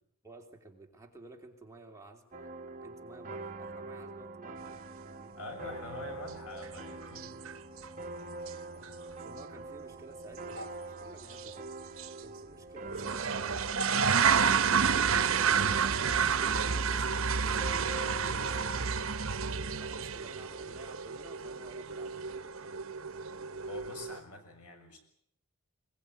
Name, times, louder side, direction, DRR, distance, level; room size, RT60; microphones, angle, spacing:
voice 1, 0.2-2.5 2.8-5.4 8.4-13.6 14.1-14.8 15.4-18.9 19.8-22.9, right 2 dB, 15° right, 1 dB, 3.0 m, -53 dB
sound 1, 2.3-18.9, right 2 dB, 35° right, 1.4 m, -44 dB
voice 2, 5.4-7.4 23.6-25.0, left 2 dB, 90° left, 5 dB, 6.8 m, -45 dB
sound 2, 6.6-6.7 7.0-7.5 7.8-7.9 8.5-8.6 8.8-8.9 10.6-10.7 11.3-11.5 12.0-12.1 12.9-24.2, right 6 dB, 65° right, 1.0 m, -30 dB
22.0 x 21.0 x 9.3 m, 0.72 s
head